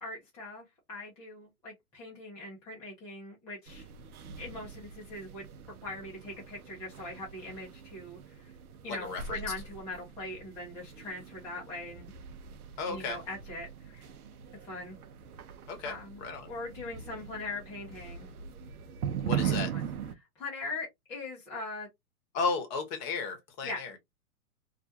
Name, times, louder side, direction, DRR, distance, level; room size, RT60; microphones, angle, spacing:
voice 1, 0.0-3.9 4.4-5.5 5.8-8.5 8.8-12.1 12.9-14.1 14.6-15.0 15.8-18.3 19.4-19.9 20.2-21.9 23.6-23.8, left 2 dB, 10° left, 0.5 m, -41 dB
sound 1, 3.7-20.1, right 8 dB, 75° right, 0.7 m, -40 dB
voice 2, 8.9-9.4 12.8-13.2 15.7-16.5 19.2-19.7 22.3-24.0, left 4 dB, 30° left, 0.9 m, -34 dB
2.4 x 2.1 x 2.6 m
hypercardioid pair, 120°, 44 cm